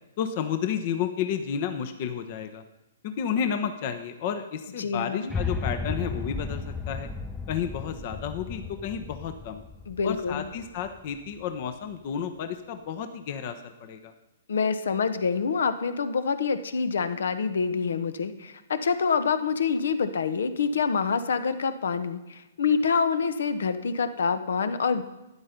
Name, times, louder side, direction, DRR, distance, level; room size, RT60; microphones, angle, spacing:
voice 1, 0.2-2.6 3.0-7.1 7.5-9.6 10.0-14.1, left 8 dB, 45° left, 8 dB, 1.0 m, -31 dB
voice 2, 4.8-5.3 9.9-10.4 14.5-25.0, left 5 dB, 70° left, 11 dB, 1.0 m, -26 dB
sound 1, 5.3-11.5, left 4 dB, 5° left, 0.7 m, -34 dB
12.5 x 9.8 x 5.2 m, 0.99 s
hypercardioid pair, 125°, 0 cm